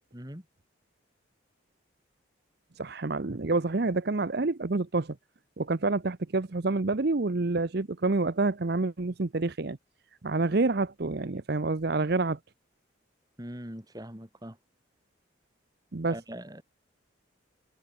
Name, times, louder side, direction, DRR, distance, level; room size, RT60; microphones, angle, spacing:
voice 1, 0.1-0.4 13.4-14.6 16.1-16.6, equal, 20° right, 3.4 m, -42 dB
voice 2, 2.8-5.2 5.6-9.8 10.2-12.4 15.9-16.2, right 3 dB, 50° right, 0.7 m, -28 dB
head